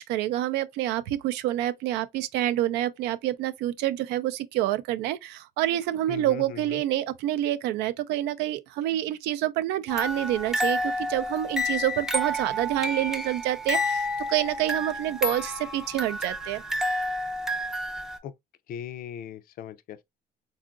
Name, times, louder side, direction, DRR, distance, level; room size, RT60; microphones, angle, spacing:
voice 1, 0.0-16.6, right 13 dB, 90° right, 0.4 m, -27 dB
voice 2, 6.1-6.8 18.2-18.3 18.7-20.0, left 9 dB, 60° left, 0.4 m, -39 dB
sound 1, 9.9-18.2, left 1 dB, 5° right, 0.4 m, -30 dB
3.7 x 2.4 x 2.4 m
cardioid pair, 110°, 17 cm